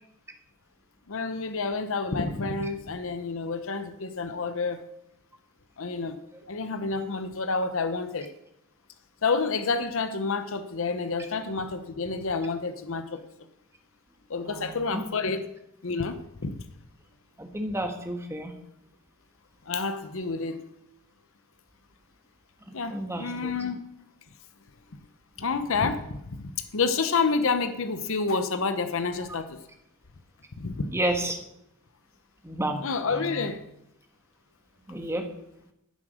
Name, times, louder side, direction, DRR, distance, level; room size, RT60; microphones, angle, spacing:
voice 1, 1.1-4.9 5.8-6.2 6.5-8.3 9.2-13.2 14.3-15.4 15.8-16.6 19.7-20.7 22.7-23.8 25.4-29.6 30.6-30.9 32.8-33.6, left 4 dB, 65° left, 10 dB, 0.8 m, -29 dB
voice 2, 14.5-15.0 17.4-18.5 22.9-23.5 30.9-31.4 32.4-32.8 33.1-33.5 34.9-35.3, right 1 dB, 10° right, 4 dB, 1.4 m, -31 dB
14.0 x 7.3 x 6.3 m, 0.82 s
head